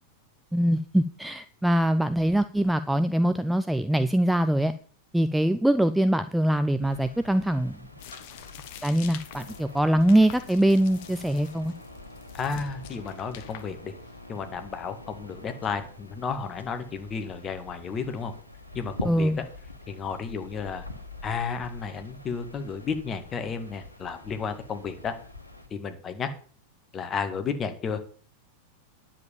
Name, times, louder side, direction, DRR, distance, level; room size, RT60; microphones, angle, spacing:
voice 1, 0.5-4.7 5.1-7.8 8.8-11.7 19.0-19.4, right 1 dB, 5° right, 11 dB, 0.5 m, -23 dB
sound 1, 6.8-25.7, left 1 dB, 85° left, 1.7 m, -45 dB
sound 2, 8.0-14.4, left 11 dB, 45° left, 1.2 m, -47 dB
voice 2, 12.3-13.9 14.3-18.3 18.7-19.5 19.9-20.9 21.2-25.2 25.7-26.3 26.9-28.2, left 5 dB, 25° left, 8 dB, 1.9 m, -32 dB
10.5 x 7.6 x 7.1 m, 0.43 s
figure-of-eight pair, 90°, 0 cm